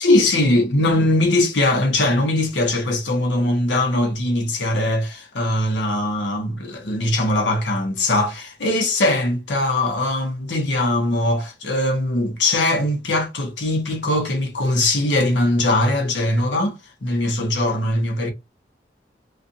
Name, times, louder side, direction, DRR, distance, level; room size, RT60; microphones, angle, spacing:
voice 1, 0.0-18.3, left 1 dB, 80° left, 0.9 m, -21 dB
2.6 x 2.4 x 2.5 m
head